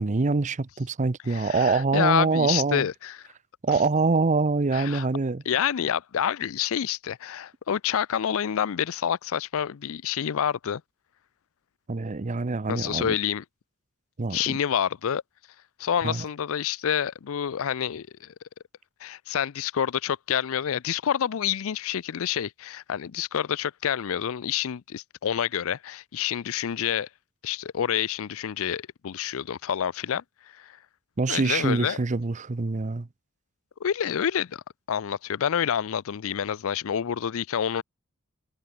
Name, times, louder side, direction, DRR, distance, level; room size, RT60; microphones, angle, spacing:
voice 1, 0.0-2.9 3.6-5.4 11.9-13.1 14.2-14.6 16.0-16.2 31.2-33.1, right 3 dB, 35° right, 0.6 m, -25 dB
voice 2, 1.3-3.2 4.7-5.1 5.5-10.8 12.7-13.4 14.3-15.2 15.8-18.3 19.0-27.1 27.4-30.2 30.6-30.8 31.3-32.0 33.8-34.6 34.9-37.8, left 8 dB, 65° left, 0.4 m, -28 dB
head